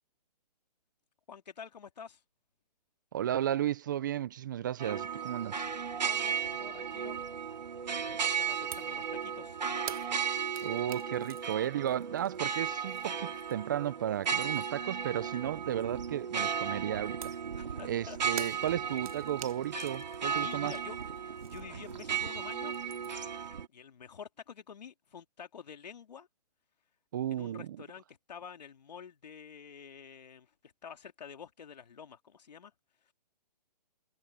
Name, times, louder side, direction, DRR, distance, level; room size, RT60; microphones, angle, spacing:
voice 1, 1.3-2.2 6.0-7.2 8.0-9.6 17.5-18.5 20.2-22.7 23.7-26.3 27.3-32.7, left 7 dB, 75° left, 2.8 m, -49 dB
voice 2, 3.1-5.6 10.6-17.4 17.8-20.7 27.1-27.8, right 11 dB, 30° right, 0.4 m, -34 dB
sound 1, 4.8-23.7, right 7 dB, 85° right, 2.7 m, -35 dB
sound 2, 8.7-9.0 9.3-13.8 14.1-14.9 17.2-22.3 22.6-23.4, right 9 dB, 55° right, 1.7 m, -48 dB
hypercardioid pair, 160°, 21 cm